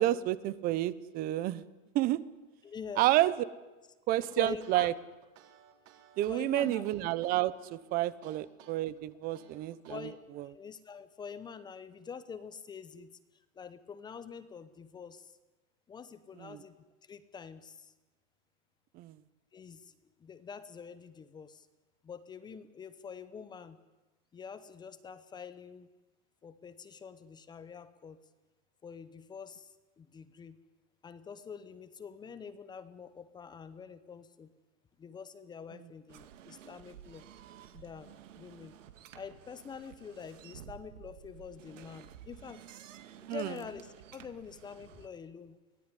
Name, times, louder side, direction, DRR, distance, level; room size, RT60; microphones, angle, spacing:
voice 1, 0.0-1.6 1.9-2.2 3.0-3.3 4.1-4.9 6.2-10.1 10.4-10.5 16.4-16.6 18.9-19.2 43.3-43.5, right 15 dB, 20° right, 19 dB, 0.7 m, -30 dB
voice 2, 2.6-3.1 4.4-4.9 6.3-6.8 9.9-10.2 10.4-15.4 15.9-16.8 17.0-17.9 19.5-21.7 22.0-23.8 24.3-25.9 26.4-28.2 28.8-30.6 31.0-34.5 35.0-37.2 37.7-38.7 39.1-42.6 43.3-45.6, left 6 dB, 10° left, 13 dB, 0.8 m, -46 dB
sound 1, 4.1-10.2, right 10 dB, 40° right, 3.6 m, -59 dB
sound 2, 36.1-45.1, right 10 dB, 65° right, 2.1 m, -53 dB
24.0 x 18.0 x 9.8 m, 1.1 s
supercardioid pair, 150°, 40 cm